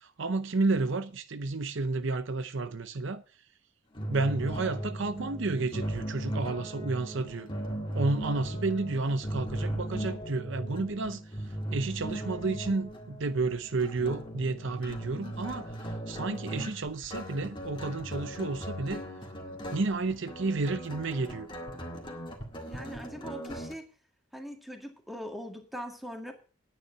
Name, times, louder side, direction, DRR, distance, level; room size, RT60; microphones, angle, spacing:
voice 1, 0.0-3.2 4.1-7.5 7.9-11.2 11.7-19.0 19.7-21.5, right 3 dB, 65° right, 0.7 m, -31 dB
sound 1, 3.9-23.7, right 1 dB, 25° left, 2.0 m, -38 dB
voice 2, 22.7-23.8 24.3-26.3, equal, ahead, 2.0 m, -41 dB
9.6 x 9.6 x 5.7 m
head